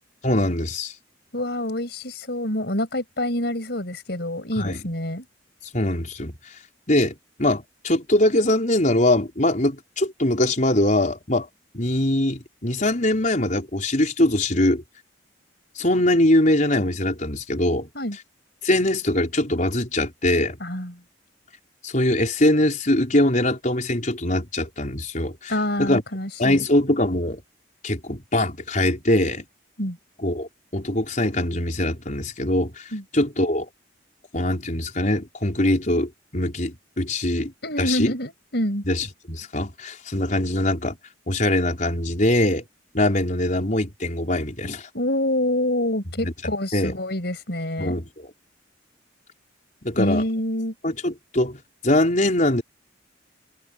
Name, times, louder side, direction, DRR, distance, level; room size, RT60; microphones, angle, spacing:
voice 1, 0.2-0.9 4.6-4.8 5.7-6.3 6.9-11.5 11.7-14.8 15.8-17.9 18.6-20.6 21.8-25.5 25.8-26.0 26.4-27.4 27.8-29.5 30.2-33.7 34.3-37.5 37.8-38.1 38.8-41.0 41.3-42.6 42.9-44.9 46.1-46.3 46.7-47.0 47.8-48.3 49.8-50.2 50.8-51.6 51.8-52.6, left 1 dB, 40° left, 4.8 m, -22 dB
voice 2, 1.3-5.2 17.9-18.2 20.6-20.9 25.5-26.7 29.8-30.0 32.9-33.0 37.6-38.8 44.9-48.0 49.9-50.7, left 1 dB, 60° left, 6.3 m, -26 dB
head